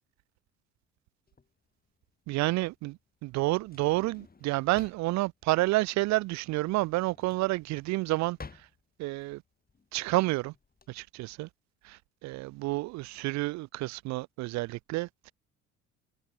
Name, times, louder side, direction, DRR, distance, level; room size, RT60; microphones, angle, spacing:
Drawer open or close, 1.3-10.9, left 4 dB, 25° left, 4.9 m, -53 dB
voice 1, 2.3-8.4 9.0-9.4 9.9-10.5 10.9-11.5 11.8-15.3, right 20 dB, 45° right, 0.5 m, -30 dB
figure-of-eight pair, 55°, 38 cm